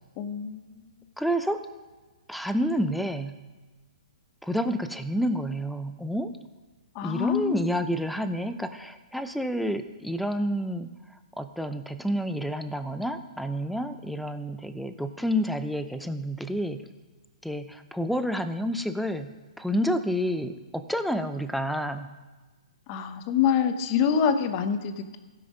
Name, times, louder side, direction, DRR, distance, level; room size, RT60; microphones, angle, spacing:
voice 1, 0.2-0.6 6.9-7.7 22.9-25.2, left 7 dB, 35° left, 9 dB, 0.9 m, -25 dB
voice 2, 1.2-1.6 2.3-3.3 4.4-6.3 7.0-10.9 11.4-16.8 17.4-22.1, equal, ahead, 9 dB, 0.5 m, -29 dB
16.0 x 5.8 x 5.1 m, 1.3 s
hypercardioid pair, 145°, 4 cm